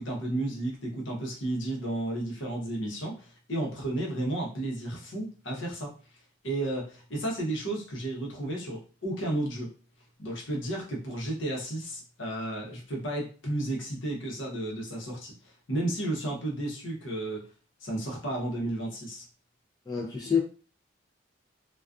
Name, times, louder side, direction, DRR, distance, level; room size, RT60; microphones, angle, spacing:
voice 1, 0.0-5.9 6.4-9.7 10.2-17.4 17.8-19.2, right 1 dB, 65° left, -1 dB, 0.8 m, -33 dB
voice 2, 19.9-20.4, left 7 dB, 20° left, -1 dB, 0.3 m, -27 dB
2.4 x 2.3 x 2.3 m, 0.37 s
head